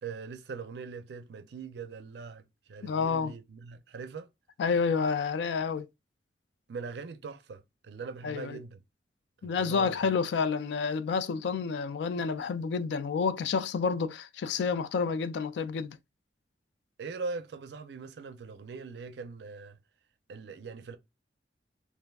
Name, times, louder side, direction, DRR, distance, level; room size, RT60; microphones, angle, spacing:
voice 1, 0.0-2.4 2.7-4.3 6.7-8.8 9.4-10.1 17.0-19.8 20.3-21.0, right 4 dB, 70° right, 0.4 m, -41 dB
voice 2, 2.8-3.3 4.6-5.9 8.2-8.6 9.4-16.0, left 5 dB, 75° left, 0.3 m, -29 dB
3.4 x 2.4 x 2.3 m
head